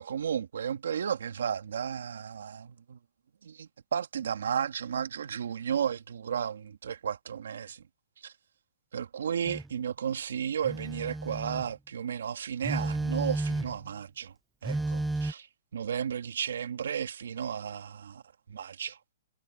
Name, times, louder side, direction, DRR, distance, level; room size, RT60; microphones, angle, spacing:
voice 1, 0.0-3.0 3.4-7.8 8.2-8.3 8.9-14.3 14.6-15.5 15.7-18.2 18.5-19.0, right 8 dB, 80° right, 2.1 m, -33 dB
Telephone, 9.4-9.7 10.6-11.7 12.6-13.9 14.6-15.3, right 2 dB, 5° right, 0.4 m, -32 dB
hypercardioid pair, 155°, 0 cm